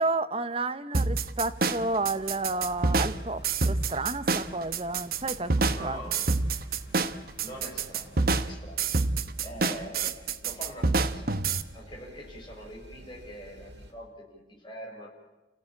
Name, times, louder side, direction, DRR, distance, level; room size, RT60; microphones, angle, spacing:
voice 1, 0.0-6.0, right 2 dB, 30° right, 12 dB, 0.9 m, -31 dB
sound 1, 0.9-11.6, right 3 dB, 55° right, 1.1 m, -27 dB
sound 2, 1.4-8.3, equal, 60° left, 6.6 m, -55 dB
sound 3, 1.4-13.9, equal, 80° right, 4.8 m, -51 dB
voice 2, 5.6-6.3 6.9-7.0 7.4-8.9 9.4-11.4 11.7-15.1, equal, 25° left, -2 dB, 6.6 m, -44 dB
30.0 x 16.5 x 8.8 m, 1.1 s
head